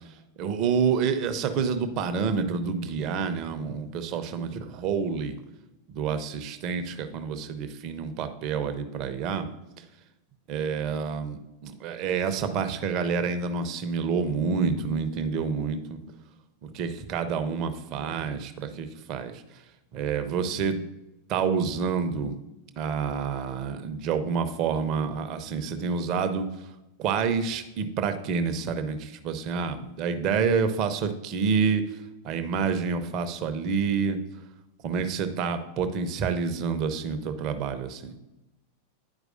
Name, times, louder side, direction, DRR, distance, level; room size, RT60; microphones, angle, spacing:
voice 1, 0.4-5.4 5.9-9.5 10.5-16.0 16.7-19.4 19.9-20.9 21.3-22.4 22.8-26.5 27.0-31.8 32.2-34.2 34.8-38.1, right 6 dB, 40° right, 9 dB, 0.7 m, -28 dB
10.5 x 4.7 x 2.6 m, 0.99 s
figure-of-eight pair, 90°, 0 cm